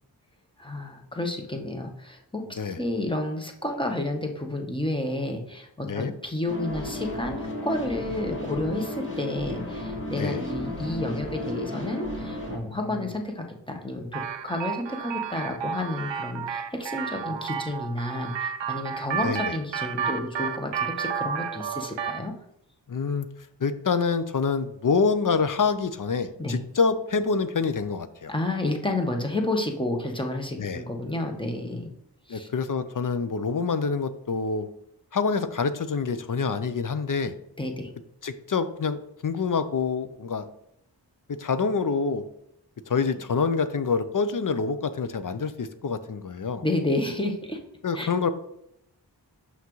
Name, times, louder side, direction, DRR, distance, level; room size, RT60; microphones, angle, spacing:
voice 1, 0.6-22.3 26.4-26.6 28.3-31.9 32.3-32.5 37.6-37.9 46.6-47.6 47.9-48.1, left 1 dB, 10° left, 2 dB, 1.0 m, -30 dB
sound 1, 6.5-12.6, left 1 dB, 30° left, 2.0 m, -33 dB
voice 2, 10.1-10.4 12.7-12.8 19.2-19.5 22.9-23.3 23.6-28.3 30.6-30.8 32.3-34.7 35.1-37.3 38.2-40.5 41.4-42.2 42.9-46.6 47.8-48.3, left 5 dB, 50° left, 11 dB, 0.6 m, -26 dB
sound 2, 14.1-22.3, right 7 dB, 80° right, 0.6 m, -32 dB
5.9 x 5.7 x 3.1 m, 0.78 s
wide cardioid pair, 50°, 43 cm